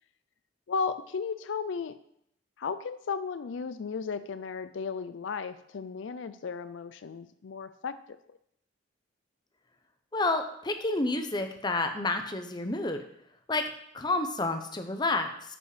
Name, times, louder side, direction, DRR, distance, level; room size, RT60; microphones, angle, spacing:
voice 1, 0.7-2.0 2.6-8.0, left 5 dB, 80° left, 13 dB, 0.4 m, -35 dB
voice 2, 10.1-13.0 13.5-13.6 13.9-15.6, left 2 dB, 25° left, 6 dB, 0.7 m, -29 dB
9.8 x 5.3 x 4.9 m, 0.73 s
head